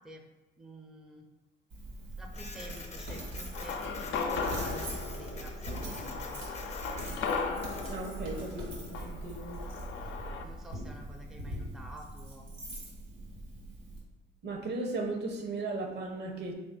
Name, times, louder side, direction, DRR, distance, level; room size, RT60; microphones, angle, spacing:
voice 1, 0.6-1.3 2.2-6.4 10.4-12.5, right 1 dB, ahead, 1 dB, 0.5 m, -49 dB
Coin (dropping), 1.7-14.0, right 1 dB, 85° right, 1.4 m, -41 dB
Printer, 2.3-8.0, left 3 dB, 35° left, 0.7 m, -47 dB
sound 1, 3.5-10.4, left 5 dB, 70° left, 0.4 m, -37 dB
voice 2, 7.9-9.6 14.4-16.5, right 3 dB, 60° right, 2 dB, 0.7 m, -36 dB
3.6 x 2.6 x 3.5 m, 1.1 s
cardioid pair, 90°, 20 cm